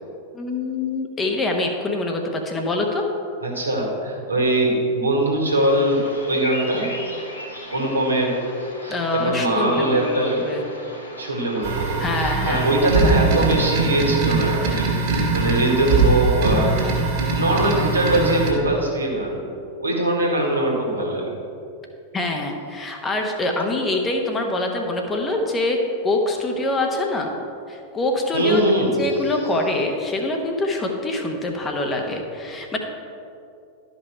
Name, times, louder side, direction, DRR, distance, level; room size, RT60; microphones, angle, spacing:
voice 1, 0.3-3.1 8.9-10.6 12.0-12.7 22.1-27.3 27.7-32.8, left 2 dB, 20° left, 2 dB, 1.1 m, -25 dB
voice 2, 3.4-6.9 7.7-8.3 8.8-10.4 11.2-16.9 17.3-19.4 19.8-21.3 28.3-29.0, right 1 dB, 80° right, -2 dB, 1.9 m, -21 dB
Bird vocalization bird call bird song, 5.5-12.8, left 1 dB, 80° left, 1.9 m, -37 dB
sound 1, 11.6-18.5, right 4 dB, 45° right, 2.2 m, -22 dB
12.0 x 5.5 x 4.4 m, 2.5 s
figure-of-eight pair, 90°, 0 cm